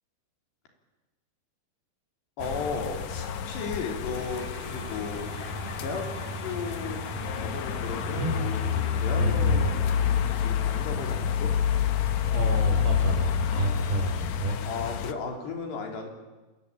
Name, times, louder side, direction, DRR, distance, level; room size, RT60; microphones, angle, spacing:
voice 1, 2.4-5.3 5.8-6.1 6.4-7.0 7.4-11.5 13.5-13.7 14.6-16.1, left 4 dB, 80° left, 3 dB, 5.9 m, -35 dB
sound 1, 2.4-15.1, left 9 dB, 65° left, 1.9 m, -28 dB
sound 2, 4.1-12.4, right 4 dB, 40° right, 5.0 m, -48 dB
sound 3, 5.2-13.5, right 8 dB, 60° right, 6.8 m, -43 dB
voice 2, 8.2-8.8 9.1-9.7 12.3-14.6, right 2 dB, 90° right, 3 dB, 7.2 m, -29 dB
27.0 x 21.0 x 8.8 m, 1.2 s
omnidirectional pair, 4.8 m